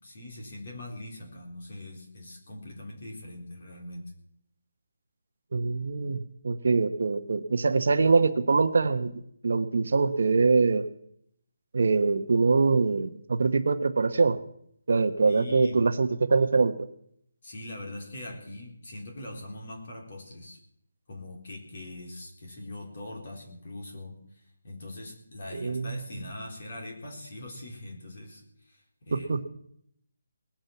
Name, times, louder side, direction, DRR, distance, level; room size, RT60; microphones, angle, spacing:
voice 1, 0.0-4.1 15.2-15.9 17.4-20.6 21.1-24.2 24.6-29.4, left 1 dB, 35° left, 0 dB, 3.6 m, -42 dB
voice 2, 5.5-9.1 9.4-10.9 11.7-14.4 14.9-16.9 25.5-26.0 29.1-29.5, right 4 dB, 50° right, 9 dB, 1.0 m, -24 dB
19.5 x 8.8 x 7.1 m, 0.70 s
hypercardioid pair, 180°, 0 cm